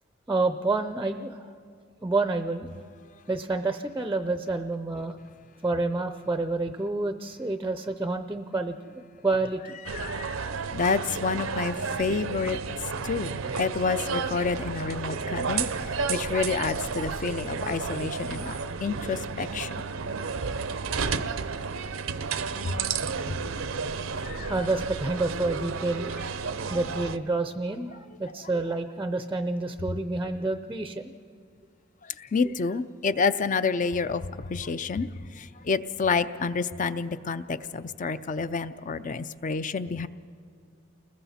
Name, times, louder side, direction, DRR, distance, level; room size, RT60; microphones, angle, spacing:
voice 1, 0.3-1.5 2.0-2.7 3.3-5.2 5.6-8.8 9.2-9.7 24.5-26.1 26.7-31.1, right 2 dB, 10° right, 8 dB, 0.5 m, -28 dB
voice 2, 9.9-12.6 13.0-19.7 22.6-22.8 24.2-24.5 32.2-35.1 35.3-40.1, left 4 dB, 40° left, 13 dB, 0.5 m, -29 dB
sound 1, 9.9-27.2, right 5 dB, 75° right, 0.7 m, -32 dB
29.5 x 20.5 x 4.2 m, 2.3 s
head